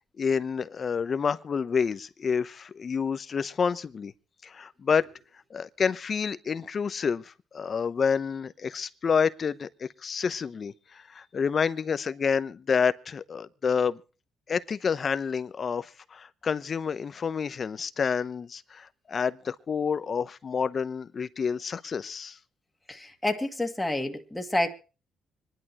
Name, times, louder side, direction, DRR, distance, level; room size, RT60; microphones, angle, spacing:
voice 1, 0.2-4.1 4.4-5.1 5.5-14.0 14.5-22.4, left 6 dB, 45° left, 0.8 m, -29 dB
voice 2, 22.9-24.7, left 1 dB, 10° left, 2.0 m, -29 dB
25.5 x 11.0 x 3.0 m
cardioid pair, 90°, 0 cm